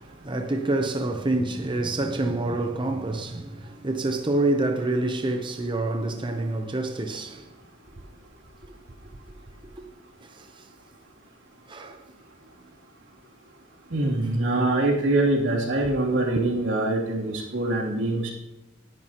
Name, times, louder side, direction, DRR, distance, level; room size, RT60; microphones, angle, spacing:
voice 1, 0.0-7.5 10.2-10.7 11.7-12.0, right 2 dB, 25° right, 0.7 m, -27 dB
voice 2, 13.9-18.3, right 2 dB, 85° right, 2.9 m, -24 dB
18.5 x 10.5 x 3.0 m
head